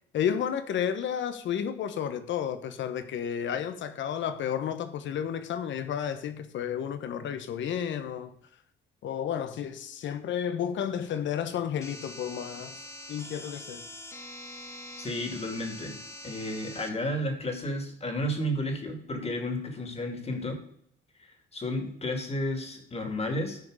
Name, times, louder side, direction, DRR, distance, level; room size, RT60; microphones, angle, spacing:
voice 1, 0.1-8.4 9.0-12.8 13.1-13.8, left 8 dB, 70° left, 1.1 m, -32 dB
sound 1, 11.8-16.9, left 1 dB, 15° left, 1.9 m, -44 dB
voice 2, 15.0-16.0 16.2-20.6 21.5-23.6, left 1 dB, 30° left, 2.4 m, -32 dB
13.5 x 5.1 x 5.0 m
cardioid pair, 90°, 20 cm